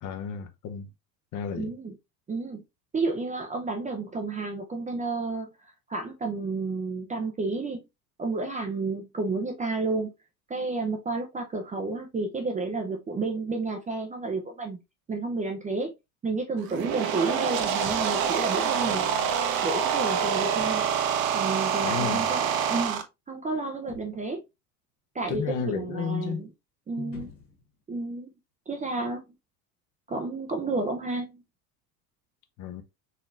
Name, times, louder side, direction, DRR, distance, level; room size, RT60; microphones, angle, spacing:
voice 1, 0.0-0.9 1.3-1.7 21.8-22.4 25.3-26.5 27.0-27.2 32.6-32.8, left 7 dB, 40° left, 0.8 m, -33 dB
voice 2, 1.6-1.9 2.3-2.6 2.9-5.5 5.9-7.8 8.2-10.1 10.5-14.8 15.1-15.9 16.2-19.0 19.6-20.9 21.3-23.0 23.3-24.4 25.1-26.5 26.9-27.3 27.9-28.3 28.7-29.2 30.1-31.4, right 3 dB, 15° right, 0.5 m, -31 dB
sound 1, 16.6-23.0, right 7 dB, 45° right, 0.8 m, -26 dB
sound 2, 17.8-18.3 19.2-19.5 20.6-21.1 22.2-22.4 23.9-24.4 25.2-25.7 27.1-27.8, left 5 dB, 80° left, 1.8 m, -47 dB
4.1 x 3.0 x 2.4 m
hypercardioid pair, 80°, 49 cm